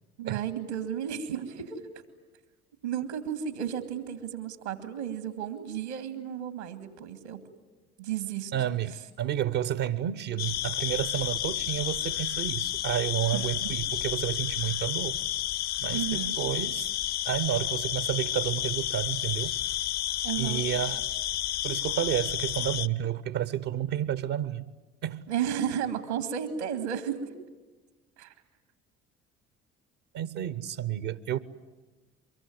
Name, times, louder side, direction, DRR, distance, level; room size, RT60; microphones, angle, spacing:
voice 1, 0.2-1.8 2.8-7.4 8.0-8.5 13.3-13.7 15.9-16.4 20.2-20.6 25.3-27.3 28.2-28.3, right 9 dB, 80° right, 2.3 m, -33 dB
voice 2, 8.5-15.2 15.8-16.9 17.2-19.6 20.4-21.1 21.6-24.7 25.0-25.2 30.1-31.4, right 11 dB, 65° right, 1.0 m, -31 dB
sound 1, 10.4-22.9, left 12 dB, 50° left, 0.8 m, -31 dB
24.0 x 23.0 x 9.4 m
figure-of-eight pair, 55°, 34 cm